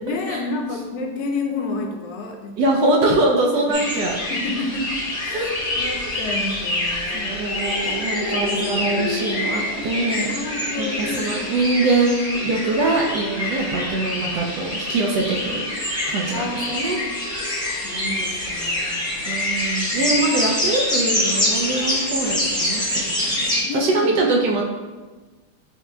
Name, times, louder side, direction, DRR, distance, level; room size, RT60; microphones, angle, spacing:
voice 1, 0.0-2.6 3.7-3.8 4.3-4.9 5.2-7.3 10.3-11.5 16.3-17.1 17.8-19.3 20.0-20.1 23.7-24.2, left 3 dB, 70° left, 2 dB, 1.1 m, -30 dB
voice 2, 2.6-4.2 5.3-5.5 7.1-10.3 10.8-15.7 16.1-17.0 19.3-24.6, right 2 dB, 75° right, -1 dB, 1.1 m, -23 dB
sound 1, 3.7-23.6, left 1 dB, 5° left, 0.4 m, -25 dB
6.4 x 2.9 x 2.2 m, 1.3 s
omnidirectional pair, 2.1 m